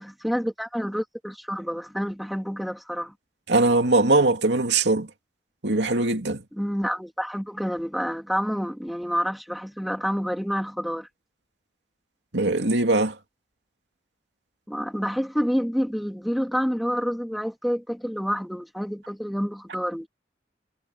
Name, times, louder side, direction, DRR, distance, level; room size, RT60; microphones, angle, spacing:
voice 1, 0.0-3.1 6.5-11.1 14.7-20.1, equal, ahead, 2.6 m, -28 dB
voice 2, 3.5-5.1 5.6-6.4 12.3-13.2, right 2 dB, 90° right, 2.7 m, -21 dB
head